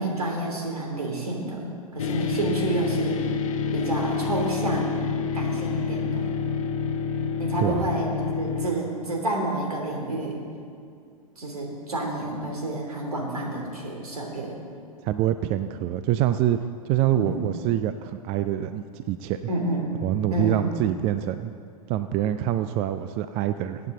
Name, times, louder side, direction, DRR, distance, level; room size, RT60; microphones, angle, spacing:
voice 1, 0.0-3.2 3.7-5.0 5.3-6.3 7.4-8.1 8.4-10.4 11.4-14.5 17.1-17.4 19.5-19.9 20.3-20.6, right 2 dB, 75° right, 0 dB, 3.1 m, -29 dB
sound 1, 2.0-8.7, left 5 dB, 60° left, 1.0 m, -27 dB
voice 2, 15.0-16.6 16.8-19.4 20.0-21.5 21.9-23.8, right 12 dB, 30° right, 11 dB, 0.4 m, -25 dB
22.0 x 8.9 x 3.9 m, 2.3 s
figure-of-eight pair, 100°, 19 cm